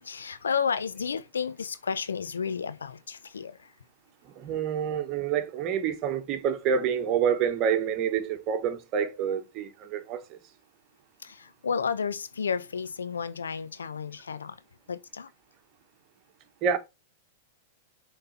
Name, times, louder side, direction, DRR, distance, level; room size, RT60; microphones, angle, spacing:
voice 1, 0.0-3.6 11.2-14.6 14.9-15.3, left 6 dB, 85° left, 0.6 m, -32 dB
voice 2, 4.3-10.4 16.6-16.8, right 7 dB, 40° right, 1.3 m, -27 dB
7.0 x 3.7 x 4.2 m
hypercardioid pair, 105°, 0 cm